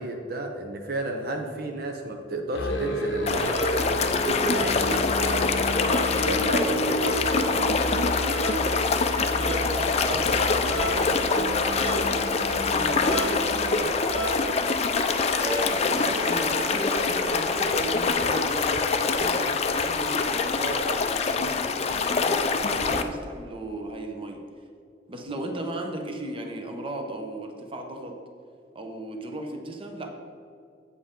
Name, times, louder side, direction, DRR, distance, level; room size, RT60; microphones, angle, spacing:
voice 1, 0.0-5.8 6.2-7.9, right 1 dB, 55° right, 3 dB, 0.7 m, -32 dB
Musical instrument, 2.5-14.1, equal, 75° left, 0.7 m, -32 dB
sound 1, 2.7-18.1, right 2 dB, 80° right, 1.6 m, -36 dB
sound 2, 3.3-23.0, left 4 dB, 35° left, 0.4 m, -25 dB
voice 2, 9.3-14.6 15.4-22.4 22.7-24.4 25.1-28.1 28.7-30.1, right 1 dB, 30° right, 3 dB, 0.9 m, -35 dB
8.3 x 7.8 x 3.7 m, 2.4 s
head